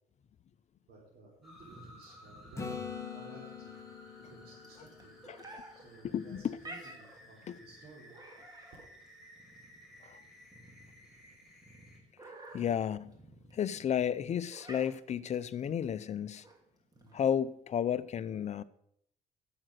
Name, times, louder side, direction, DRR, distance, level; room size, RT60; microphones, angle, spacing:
voice 1, 0.9-2.7 3.0-3.8 4.1-5.2 5.7-8.1 14.0-14.2 16.9-17.3, right 2 dB, 70° right, 4.2 m, -56 dB
sound 1, 1.4-12.0, equal, ahead, 4.4 m, -57 dB
sound 2, 1.6-17.5, right 1 dB, 20° right, 2.8 m, -53 dB
Acoustic guitar / Strum, 2.6-6.3 11.2-11.3, left 5 dB, 15° left, 1.5 m, -44 dB
voice 2, 5.3-5.6 6.0-6.6 7.5-7.6 10.0-10.2 12.5-13.0 13.5-16.4 17.1-18.6, left 9 dB, 40° left, 0.6 m, -32 dB
12.0 x 7.9 x 6.5 m
cardioid pair, 110°, 17 cm